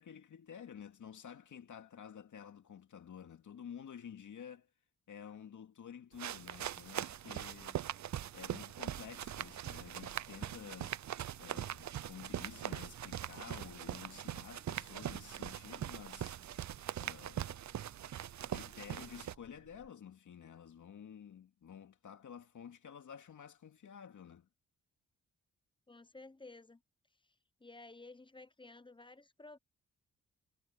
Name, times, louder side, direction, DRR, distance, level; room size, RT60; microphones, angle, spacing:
voice 1, 0.0-4.7 5.1-7.8 8.3-11.0 11.4-16.4 17.0-17.6 18.4-24.5, left 8 dB, 70° left, 2.5 m, -51 dB
sound 1, 6.1-19.3, right 11 dB, 60° right, 0.7 m, -42 dB
sound 2, 7.0-19.9, right 5 dB, 40° right, 1.6 m, -64 dB
voice 2, 25.9-26.8 27.6-29.6, left 2 dB, 15° left, 0.9 m, -54 dB
cardioid pair, 80°, 32 cm